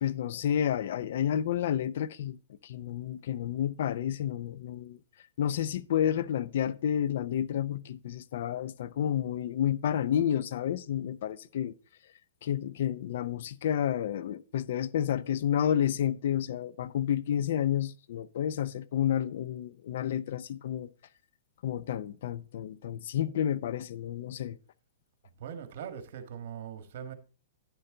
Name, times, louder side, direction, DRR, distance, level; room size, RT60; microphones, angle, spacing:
voice 1, 0.0-2.4 2.6-5.0 5.4-11.7 12.4-20.9 21.6-24.6, left 10 dB, 65° left, 0.5 m, -30 dB
voice 2, 25.4-27.1, right 8 dB, 60° right, 1.5 m, -41 dB
10.0 x 6.8 x 3.9 m
hypercardioid pair, 140°, 0 cm